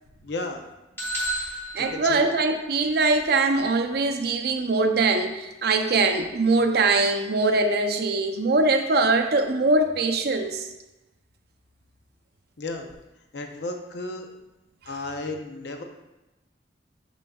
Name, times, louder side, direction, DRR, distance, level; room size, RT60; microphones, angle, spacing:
voice 1, 0.2-0.6 1.8-2.3 12.6-12.9 13.3-14.3 14.9-15.8, left 2 dB, 70° left, 4 dB, 0.7 m, -33 dB
sound 1, 1.0-2.9, right 1 dB, 15° left, 1.3 m, -32 dB
voice 2, 1.7-10.7, right 3 dB, 60° right, 6 dB, 0.5 m, -22 dB
6.6 x 6.1 x 2.3 m, 1.0 s
head